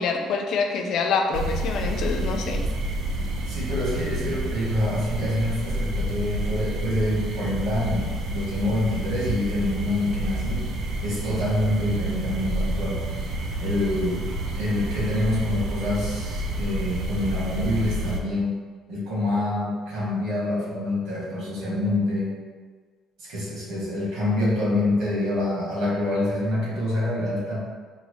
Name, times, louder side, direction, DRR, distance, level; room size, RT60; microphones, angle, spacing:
voice 1, 0.0-2.6, left 4 dB, 50° left, 3 dB, 0.3 m, -26 dB
sound 1, 1.3-18.2, right 1 dB, 50° right, 0.3 m, -29 dB
voice 2, 3.5-10.7 11.0-13.0 13.6-14.3 14.5-18.6 18.9-22.3 23.2-27.6, left 1 dB, 70° right, -6 dB, 1.3 m, -26 dB
3.9 x 2.1 x 3.0 m, 1.5 s
cardioid pair, 175°, 0 cm